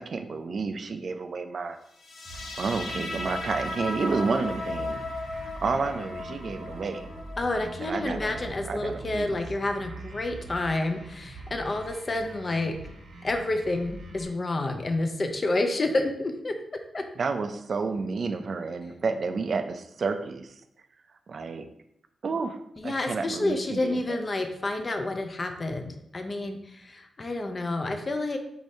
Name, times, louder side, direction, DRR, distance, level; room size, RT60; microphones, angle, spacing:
voice 1, 0.0-1.8 2.3-5.0 5.6-7.1 7.8-8.3 8.7-9.4 17.2-20.5 21.3-21.6 22.2-22.6 22.8-24.0, right 4 dB, 45° right, 8 dB, 0.4 m, -30 dB
sound 1, 2.0-9.0, left 2 dB, 75° left, 0.9 m, -36 dB
sound 2, 2.3-14.3, right 2 dB, 80° right, 1.0 m, -43 dB
voice 2, 7.4-12.8 13.2-16.5 16.9-17.0 22.8-28.4, left 2 dB, 30° left, 5 dB, 0.4 m, -29 dB
4.8 x 2.6 x 4.2 m, 0.77 s
wide cardioid pair, 155°, 0 cm